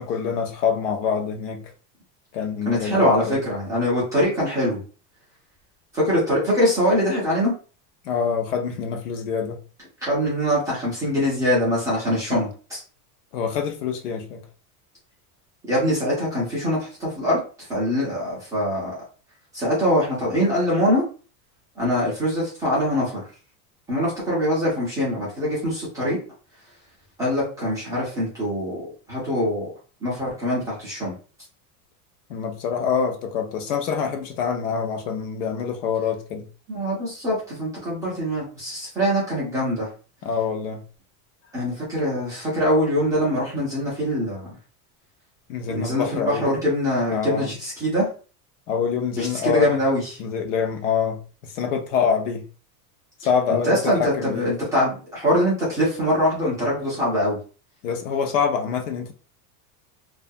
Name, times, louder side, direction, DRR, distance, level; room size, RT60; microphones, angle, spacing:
voice 1, 0.0-1.6 2.3-3.4 8.0-9.6 13.3-14.5 32.3-36.5 40.2-40.8 45.5-46.6 47.1-47.5 48.7-49.8 50.2-52.5 53.2-54.4 57.8-59.1, left 6 dB, 55° left, 0.6 m, -25 dB
voice 2, 2.7-4.8 5.9-7.5 10.0-12.8 15.7-17.4 17.7-19.0 19.5-21.0 21.8-23.2 23.9-26.2 27.2-29.7 30.0-31.1 36.7-39.9 41.5-44.5 45.7-48.1 49.2-50.2 53.6-57.4, equal, 10° right, 0.5 m, -23 dB
2.3 x 2.2 x 2.6 m
supercardioid pair, 170°, 46 cm